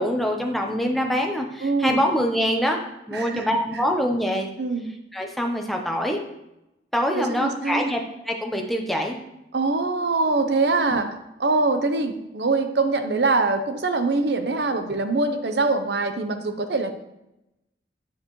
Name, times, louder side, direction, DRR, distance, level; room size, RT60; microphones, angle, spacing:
voice 1, 0.0-2.8 3.1-4.5 5.1-6.2 6.9-8.0 8.3-9.2, equal, ahead, 1 dB, 0.8 m, -24 dB
voice 2, 1.6-2.0 3.1-3.8 4.6-4.9 7.1-7.8 9.5-11.1 11.4-16.9, right 3 dB, 70° right, 7 dB, 0.8 m, -23 dB
9.2 x 6.9 x 3.1 m, 0.89 s
head